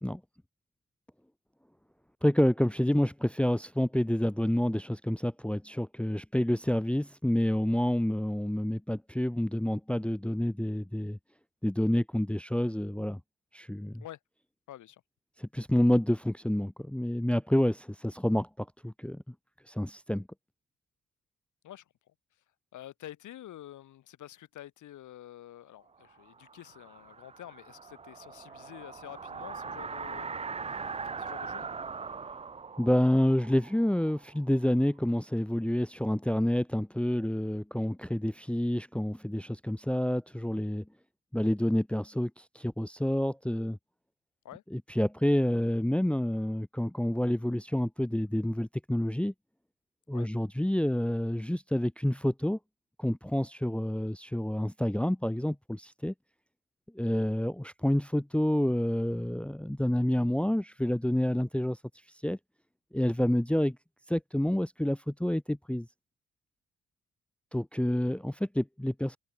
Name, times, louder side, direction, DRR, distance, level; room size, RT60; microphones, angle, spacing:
voice 1, 2.2-11.2 11.6-13.2 13.5-14.0 15.4-19.3 19.7-20.3 32.8-40.8 41.3-43.8 44.7-49.3 50.1-52.6 53.0-56.1 56.9-61.8 62.2-62.4 62.9-63.8 64.1-65.9 67.5-69.2, left 1 dB, 5° left, 0.9 m, -28 dB
voice 2, 14.7-15.0 21.6-22.1 22.7-31.7 44.4-44.6 50.1-50.3, left 13 dB, 75° left, 3.9 m, -48 dB
sound 1, 26.2-34.9, right 5 dB, 20° right, 0.6 m, -41 dB
cardioid pair, 90°, 30 cm